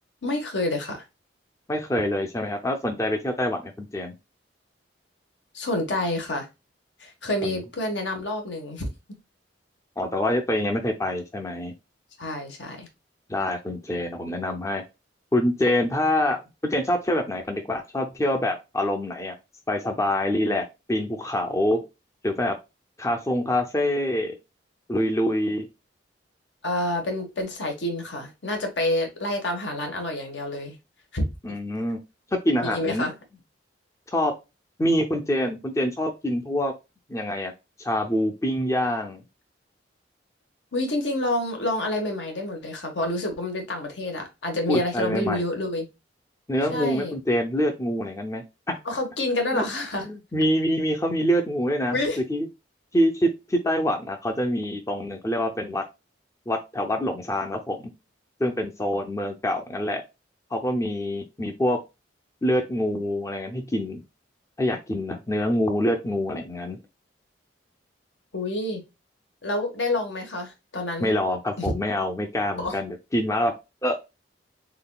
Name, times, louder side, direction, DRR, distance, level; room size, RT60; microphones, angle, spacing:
voice 1, 0.2-1.0 5.5-6.5 7.0-8.9 12.2-12.9 26.6-30.8 31.1-31.3 32.6-33.1 40.7-45.9 46.7-47.1 48.8-50.1 51.9-52.2 68.3-68.8 69.4-71.1 71.6-71.7 72.6-72.7, left 1 dB, 75° left, 1.3 m, -28 dB
voice 2, 1.7-4.1 7.4-7.6 10.0-11.7 13.3-14.8 15.3-19.3 19.7-21.9 22.2-22.6 23.0-24.4 24.9-25.7 31.4-32.0 32.4-33.1 34.1-34.3 34.8-36.7 37.1-37.5 37.8-39.2 44.7-45.4 46.5-48.8 49.5-49.6 50.0-52.0 52.3-52.5 52.9-55.9 56.5-57.9 58.4-60.0 60.5-61.8 62.4-64.0 64.6-66.8 71.0-73.5 73.8-74.0, left 1 dB, 15° left, 0.5 m, -25 dB
3.9 x 3.6 x 2.3 m
head